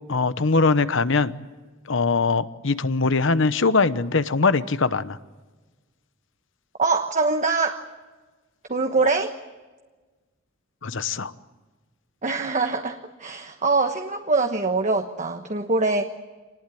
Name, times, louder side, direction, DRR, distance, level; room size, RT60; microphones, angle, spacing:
voice 1, 0.1-1.3 1.9-5.2 10.8-11.3, left 4 dB, 65° left, 13 dB, 1.0 m, -21 dB
voice 2, 6.8-7.8 8.7-9.3 12.2-16.0, right 3 dB, 35° right, 5 dB, 1.2 m, -23 dB
26.5 x 19.5 x 9.3 m, 1.3 s
head